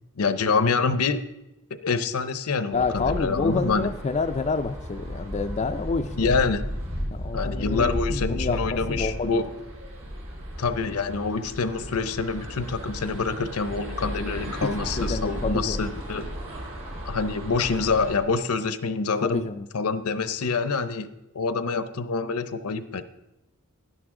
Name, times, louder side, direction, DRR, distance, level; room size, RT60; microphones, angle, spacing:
voice 1, 0.2-1.2 1.8-3.9 6.1-6.6 7.3-9.5 10.6-16.3 17.0-19.5 19.7-21.1 21.3-23.0, left 4 dB, 70° left, 12 dB, 0.7 m, -26 dB
voice 2, 2.7-6.2 7.1-9.3 14.6-14.7 15.0-15.9 19.2-19.7, left 4 dB, 30° left, 6 dB, 0.4 m, -28 dB
sound 1, 2.7-18.2, equal, 65° right, 2.5 m, -34 dB
11.5 x 10.5 x 3.7 m, 0.96 s
head